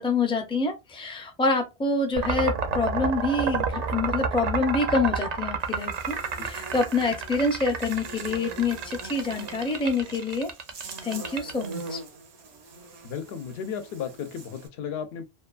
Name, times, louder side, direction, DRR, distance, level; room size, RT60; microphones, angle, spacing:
voice 1, 0.0-6.2 6.4-10.5 11.0-12.0, left 3 dB, 10° left, 0.3 m, -26 dB
sound 1, 2.1-11.9, right 5 dB, 55° right, 0.5 m, -30 dB
Buzz, 5.6-14.7, right 3 dB, 85° right, 1.0 m, -43 dB
voice 2, 13.0-15.2, left 7 dB, 75° left, 0.8 m, -34 dB
2.8 x 2.2 x 2.3 m
omnidirectional pair, 1.1 m